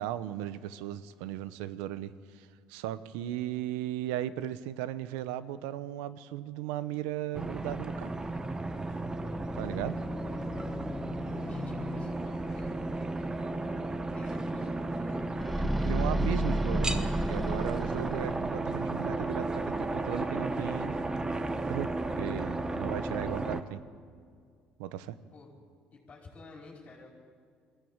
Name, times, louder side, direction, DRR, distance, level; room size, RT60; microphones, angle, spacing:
voice 1, 0.0-8.1 9.6-10.0 15.8-21.0 21.7-23.8 24.8-25.2, right 12 dB, 90° right, 15 dB, 0.8 m, -36 dB
sound 1, 7.3-23.6, right 2 dB, 20° right, 1.3 m, -34 dB
sound 2, 9.1-14.8, left 5 dB, 20° left, 1.2 m, -45 dB
voice 2, 10.3-10.7 11.1-15.2 25.3-25.5 25.9-27.1, left 3 dB, 35° left, -2 dB, 4.8 m, -51 dB
sound 3, 15.4-18.6, equal, ahead, 0.8 m, -31 dB
21.0 x 15.0 x 8.8 m, 2.2 s
supercardioid pair, 85°, 4 cm